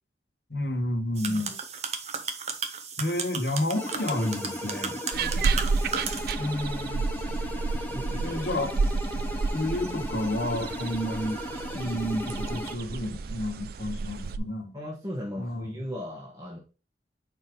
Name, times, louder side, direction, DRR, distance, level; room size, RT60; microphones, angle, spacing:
voice 1, 0.5-1.6 3.0-5.0 6.4-7.0 8.2-8.7 9.5-11.4 11.7-14.8 15.4-15.7, left 1 dB, 60° left, 1.3 m, -30 dB
voice 2, 1.2-1.5 5.2-5.7 7.9-8.4 14.7-16.6, equal, 20° right, 1.2 m, -38 dB
sound 1, 1.2-6.3, right 5 dB, 40° right, 0.8 m, -35 dB
sound 2, 3.7-12.8, equal, 10° left, 0.6 m, -36 dB
sound 3, 5.1-14.4, right 4 dB, 55° right, 0.4 m, -31 dB
4.8 x 4.3 x 5.2 m
head